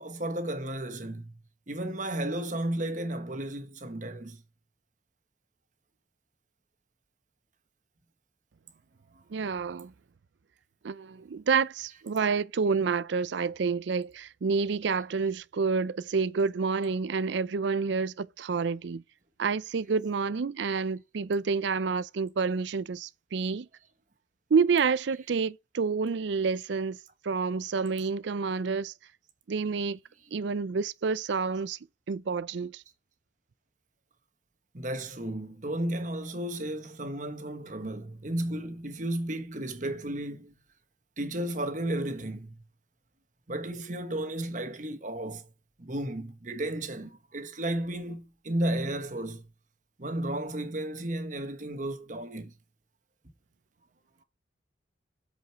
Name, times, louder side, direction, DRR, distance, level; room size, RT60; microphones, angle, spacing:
voice 1, 0.0-1.3 1.7-4.4 12.2-12.3 28.0-28.1 34.7-40.5 41.2-42.5 43.5-45.5 45.8-49.4 50.0-52.5, right 1 dB, 40° right, 1.3 m, -33 dB
voice 2, 9.3-9.9 10.8-19.0 19.4-23.7 24.5-27.0 27.2-28.9 29.5-30.0 30.3-31.8 32.1-32.8, right 5 dB, 65° right, 0.4 m, -28 dB
8.0 x 5.2 x 4.6 m
head